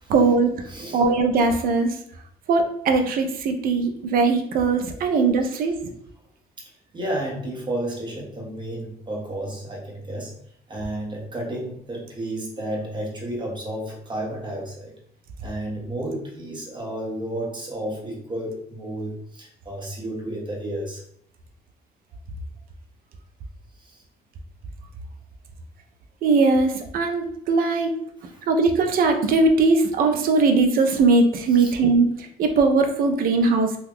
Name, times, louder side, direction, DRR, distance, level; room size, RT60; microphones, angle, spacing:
voice 1, 0.1-0.6 0.9-2.0 2.5-5.8 26.2-28.0 28.5-33.8, right 3 dB, 60° right, 5 dB, 0.6 m, -20 dB
voice 2, 0.7-1.0 5.4-5.6 6.9-10.3 10.7-15.0 15.4-21.0 23.8-24.0 28.3-28.4 31.5-31.7, right 1 dB, 25° right, -2 dB, 1.1 m, -32 dB
2.8 x 2.3 x 3.6 m, 0.68 s
cardioid pair, 110°, 17 cm